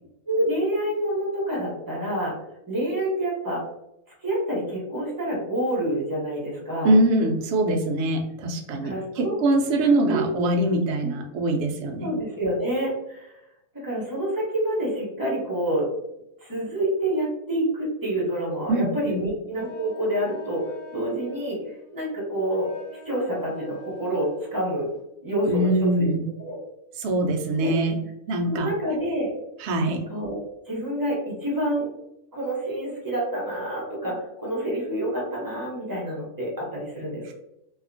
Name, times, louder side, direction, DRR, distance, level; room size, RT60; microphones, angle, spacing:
voice 1, 0.3-2.3 2.7-3.6 4.2-6.9 8.8-9.3 10.1-10.2 11.0-11.1 12.0-13.3 13.7-15.9 16.4-21.6 21.9-22.7 23.0-24.9 25.2-25.7 26.0-26.1 26.4-26.6 27.6-27.7 28.4-29.3 30.1-30.4 30.7-31.9 32.3-37.3, right 1 dB, 20° right, -5 dB, 0.5 m, -27 dB
voice 2, 6.8-12.1 18.7-19.2 25.5-26.2 27.0-28.0 28.3-28.7 29.6-30.0 37.2-37.3, right 1 dB, 75° right, 3 dB, 0.6 m, -23 dB
Wind instrument woodwind instrument, 19.5-25.1, equal, 85° left, 1.2 m, -45 dB
2.7 x 2.4 x 2.5 m, 0.84 s
omnidirectional pair, 1.7 m